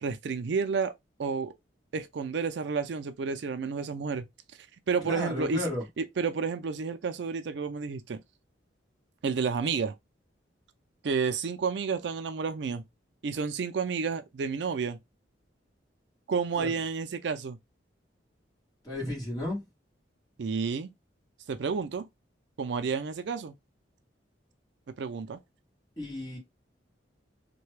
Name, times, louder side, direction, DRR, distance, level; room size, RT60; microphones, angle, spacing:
voice 1, 0.0-0.9 1.2-1.5 1.9-4.3 4.9-5.7 6.0-8.2 9.2-10.0 11.0-12.8 13.2-15.0 16.3-17.6 20.4-20.9 21.5-22.1 22.6-23.5 25.0-25.4, right 5 dB, 70° right, 0.4 m, -30 dB
voice 2, 5.0-5.8 16.6-16.7 18.8-19.6 26.0-26.4, left 1 dB, 20° left, 1.7 m, -33 dB
3.2 x 2.2 x 3.2 m
head